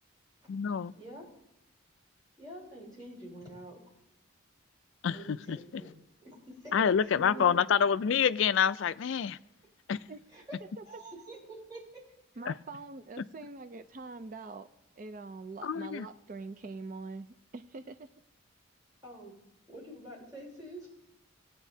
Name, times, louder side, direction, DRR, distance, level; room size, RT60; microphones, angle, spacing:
voice 1, 0.5-0.9 5.0-5.6 6.7-9.4 9.9-10.0 12.5-12.6 15.6-16.1, left 7 dB, 65° left, 0.3 m, -27 dB
voice 2, 2.4-3.8 5.1-5.9 6.2-6.7 7.0-7.6 10.3-10.4 10.9-11.4 11.7-11.8 19.0-19.3 19.7-20.9, right 1 dB, 20° right, 3.6 m, -47 dB
voice 3, 7.2-7.6 10.1-10.2 10.8-11.0 12.4-14.7 15.0-18.1, right 3 dB, 40° right, 0.4 m, -44 dB
18.5 x 9.0 x 2.7 m
head